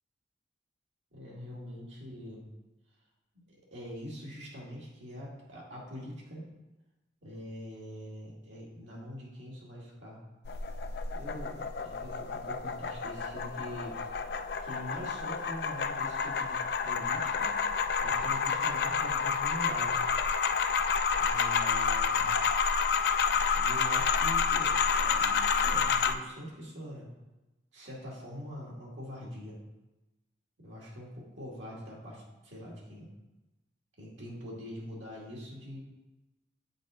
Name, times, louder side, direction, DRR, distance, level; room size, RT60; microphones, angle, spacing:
voice 1, 1.1-2.4 3.7-6.5 7.2-10.2 11.1-13.9 14.6-17.6 18.0-20.0 21.2-22.3 23.6-27.1 27.7-29.6 30.6-33.1 34.0-35.8, equal, 85° right, -4 dB, 2.2 m, -43 dB
sound 1, 10.5-26.1, left 6 dB, 55° left, 0.4 m, -29 dB
8.0 x 4.6 x 3.8 m, 1.0 s
head